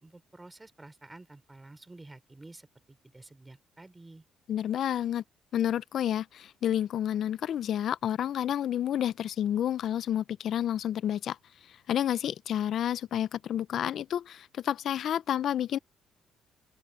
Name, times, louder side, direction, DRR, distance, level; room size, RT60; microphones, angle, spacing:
voice 1, 0.0-4.2, right 2 dB, 15° right, 4.7 m, -51 dB
voice 2, 4.5-5.2 5.5-11.4 11.7-15.8, left 10 dB, 70° left, 0.4 m, -30 dB
open air
cardioid pair, 90°, 0 cm